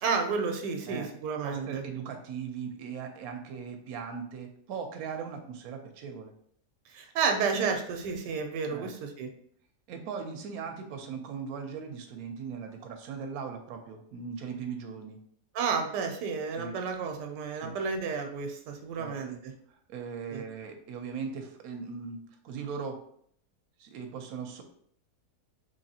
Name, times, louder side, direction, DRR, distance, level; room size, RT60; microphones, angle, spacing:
voice 1, 0.0-1.8 6.9-9.3 15.5-19.4 20.3-20.4, right 5 dB, 90° right, 4 dB, 1.2 m, -31 dB
voice 2, 1.4-6.3 8.7-8.9 9.9-15.2 16.5-16.8 17.5-17.7 19.0-19.2 19.7-23.0 23.8-24.6, right 6 dB, 70° right, 4 dB, 1.0 m, -39 dB
3.9 x 3.1 x 2.8 m, 0.64 s
omnidirectional pair, 1.8 m